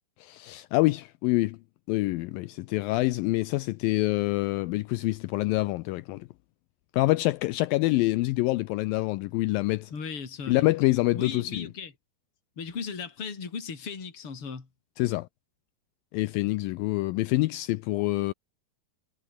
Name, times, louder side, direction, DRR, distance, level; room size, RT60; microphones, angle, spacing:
voice 1, 0.2-1.6 1.9-6.3 6.9-9.9 10.5-11.7 15.0-15.3 16.1-18.3, left 20 dB, 80° left, 2.1 m, -26 dB
voice 2, 9.9-10.7 11.1-11.9 12.6-14.7, left 5 dB, 35° left, 4.6 m, -36 dB
omnidirectional pair, 4.5 m